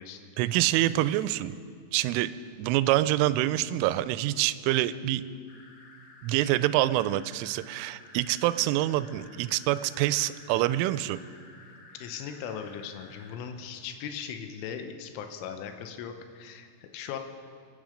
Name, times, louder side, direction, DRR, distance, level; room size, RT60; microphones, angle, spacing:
voice 1, 0.4-1.6 1.9-2.3 2.6-5.2 6.2-11.2, right 15 dB, 90° right, 14 dB, 3.1 m, -26 dB
sound 1, 5.5-13.4, left 3 dB, 60° left, 2.7 m, -53 dB
voice 2, 12.0-17.2, left 7 dB, 85° left, 6 dB, 3.4 m, -39 dB
25.0 x 9.7 x 5.1 m, 2.2 s
omnidirectional pair, 5.6 m